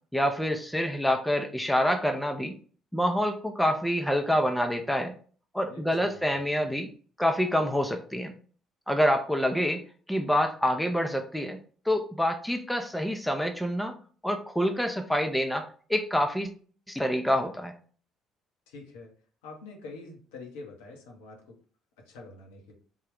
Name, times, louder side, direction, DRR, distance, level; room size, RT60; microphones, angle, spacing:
voice 1, 0.1-2.5 2.9-5.1 5.5-6.9 7.2-8.3 8.9-9.8 10.1-11.6 11.9-14.0 14.2-16.5 16.9-17.7, equal, 5° left, 5 dB, 0.5 m, -27 dB
voice 2, 5.7-6.4 18.7-19.1 19.4-21.6 22.0-22.7, left 3 dB, 70° left, 0 dB, 0.8 m, -46 dB
3.6 x 2.3 x 3.3 m, 0.43 s
figure-of-eight pair, 50°, 0 cm